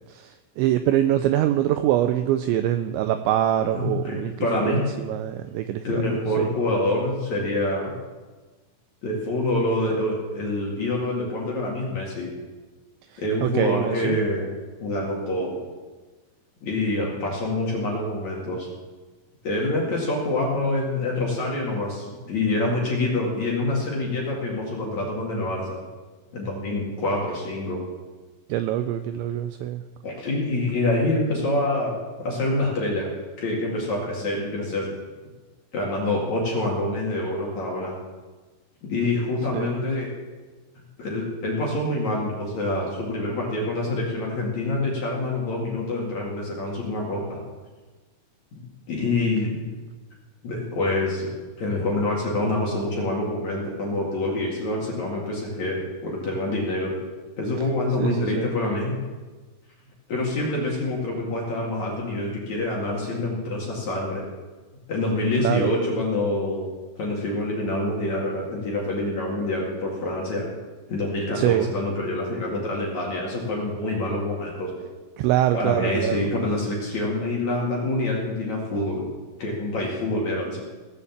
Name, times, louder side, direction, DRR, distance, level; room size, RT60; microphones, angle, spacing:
voice 1, 0.1-6.0 6.4-6.5 13.4-14.2 28.5-29.8 39.5-39.7 58.0-58.5 65.4-65.8 71.4-71.7 75.2-76.3, right 12 dB, 90° right, 9 dB, 2.6 m, -24 dB
voice 2, 3.8-4.8 5.8-7.9 9.0-12.3 13.2-14.5 14.8-15.6 16.6-18.7 19.4-25.8 26.3-27.8 30.0-33.1 33.4-34.9 35.7-37.9 38.8-40.1 41.0-47.4 48.5-49.6 50.4-51.3 51.6-57.0 57.4-59.0 60.1-64.2 64.9-66.6 67.0-70.5 70.9-74.7 75.5-79.0 79.4-80.6, left 2 dB, 50° left, -3 dB, 2.6 m, -26 dB
18.0 x 7.0 x 7.3 m, 1.3 s
omnidirectional pair, 5.8 m